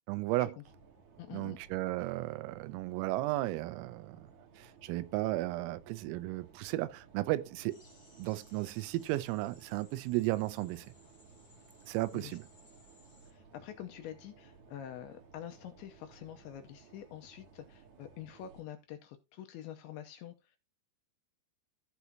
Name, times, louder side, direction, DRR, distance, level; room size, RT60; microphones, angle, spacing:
voice 1, 0.1-0.5 1.3-4.3 4.6-7.8 8.2-10.9 11.9-12.4, right 17 dB, 90° right, 3.4 m, -34 dB
sound 1, 0.6-18.6, right 5 dB, 70° right, 1.7 m, -59 dB
voice 2, 1.2-1.6 12.1-12.4 13.3-20.6, left 10 dB, 80° left, 2.7 m, -47 dB
sound 2, 7.7-13.3, left 3 dB, 30° left, 3.6 m, -63 dB
14.5 x 6.0 x 2.8 m
omnidirectional pair, 5.9 m